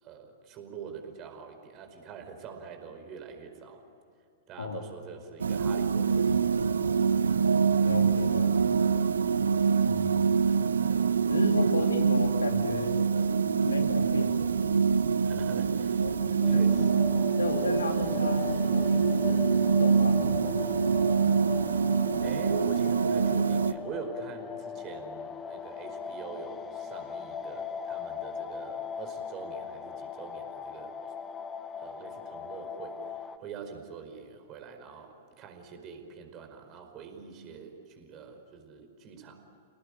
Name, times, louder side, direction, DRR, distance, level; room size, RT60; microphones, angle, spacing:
voice 1, 0.0-3.8 4.5-6.7 11.8-11.9 15.2-16.2 16.4-17.1 22.2-31.0 31.8-39.4, right 6 dB, 35° right, 5 dB, 5.0 m, -44 dB
sound 1, 5.4-23.7, right 6 dB, 75° right, 1.0 m, -25 dB
voice 2, 7.8-8.8 9.8-10.3 11.3-13.0 13.6-14.4 16.0-16.6 17.4-20.6, left 2 dB, 80° left, 4 dB, 3.2 m, -34 dB
sound 2, 16.4-33.4, left 7 dB, 20° left, 1.3 m, -39 dB
29.5 x 19.0 x 9.0 m, 2.6 s
figure-of-eight pair, 105°, 0 cm